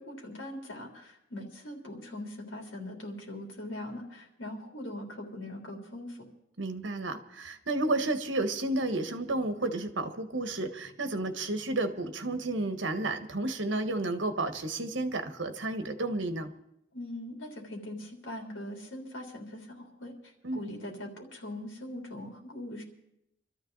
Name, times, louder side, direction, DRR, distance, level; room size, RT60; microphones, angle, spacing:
voice 1, 0.0-6.3 16.9-22.8, left 1 dB, 90° left, 1 dB, 3.5 m, -41 dB
voice 2, 6.6-16.5 20.4-20.7, right 2 dB, 75° right, 7 dB, 1.5 m, -31 dB
24.5 x 13.5 x 4.1 m, 0.79 s
head